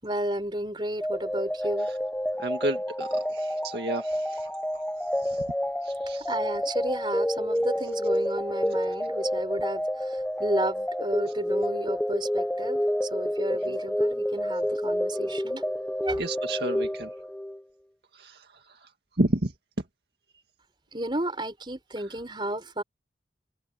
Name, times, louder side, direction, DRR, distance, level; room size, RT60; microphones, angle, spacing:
voice 1, 0.0-1.9 6.3-15.6 16.0-16.2 20.9-22.8, right 1 dB, 25° right, 5.1 m, -32 dB
sound 1, 1.0-17.6, equal, 5° left, 0.9 m, -29 dB
voice 2, 2.4-4.8 5.1-5.5 5.8-6.3 13.7-13.8 16.2-17.1 18.1-18.9 19.2-19.5, right 1 dB, 65° right, 2.0 m, -32 dB
open air
head